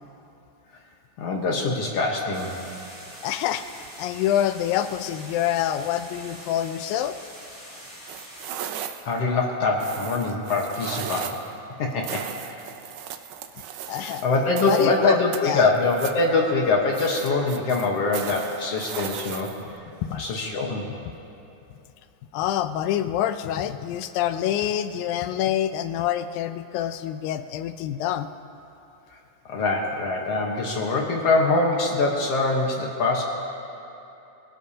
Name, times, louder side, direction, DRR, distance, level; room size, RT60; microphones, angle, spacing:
voice 1, 1.2-2.6 9.1-11.4 11.8-12.7 14.2-19.5 20.1-20.9 29.1-29.2 29.5-33.2, left 3 dB, 60° left, 0 dB, 1.7 m, -24 dB
sound 1, 2.3-8.5, equal, 5° right, 2.1 m, -44 dB
voice 2, 3.2-7.2 13.9-14.2 14.7-15.7 20.1-20.2 22.3-28.3, left 11 dB, 80° left, 10 dB, 2.3 m, -26 dB
sound 2, 8.1-9.2 9.8-11.5 12.0-15.0 15.3-16.2 16.9-19.8, right 10 dB, 80° right, 1.6 m, -36 dB
25.0 x 16.5 x 2.8 m, 2.9 s
omnidirectional pair, 4.1 m